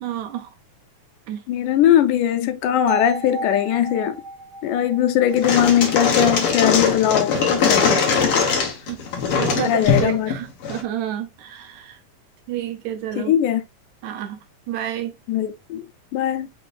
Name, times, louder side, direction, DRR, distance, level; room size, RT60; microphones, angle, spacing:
voice 1, 0.0-0.5 1.3-1.4 7.3-7.4 8.3-8.5 8.9-9.0 9.4-12.0 12.5-13.3 14.0-14.4 14.7-15.1, right 10 dB, 75° right, 1.9 m, -30 dB
voice 2, 1.5-4.2 4.6-8.0 9.6-10.3 13.2-13.6 15.3-15.9 16.1-16.5, left 10 dB, 80° left, 2.1 m, -20 dB
sound 1, 2.9-6.9, right 2 dB, 60° right, 2.8 m, -33 dB
sound 2, 5.3-10.8, left 5 dB, 55° left, 1.7 m, -21 dB
5.5 x 3.9 x 2.4 m
omnidirectional pair, 3.7 m